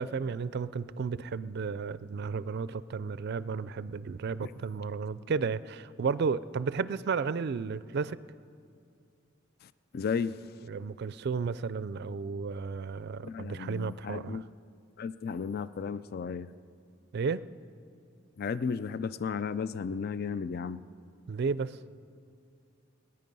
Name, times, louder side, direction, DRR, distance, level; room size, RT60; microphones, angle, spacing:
voice 1, 0.0-8.2 10.7-14.4 17.1-17.4 21.3-21.8, right 5 dB, 55° right, 16 dB, 0.4 m, -33 dB
voice 2, 9.9-10.4 13.2-14.4 15.0-16.5 18.4-20.8, left 6 dB, 50° left, 15 dB, 0.4 m, -34 dB
27.5 x 9.5 x 5.4 m, 2.4 s
head